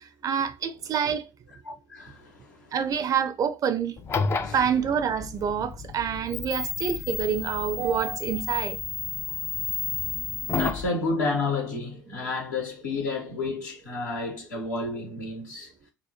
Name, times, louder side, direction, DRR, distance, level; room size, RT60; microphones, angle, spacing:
voice 1, 0.2-1.2 2.7-3.9 4.5-8.8, right 7 dB, 40° right, 0.5 m, -27 dB
voice 2, 1.6-2.7 4.4-4.6 9.3-15.7, left 3 dB, 75° left, 1.1 m, -31 dB
sound 1, 4.0-10.9, left 5 dB, 25° left, 0.4 m, -32 dB
2.9 x 2.2 x 4.1 m
figure-of-eight pair, 65°, 10 cm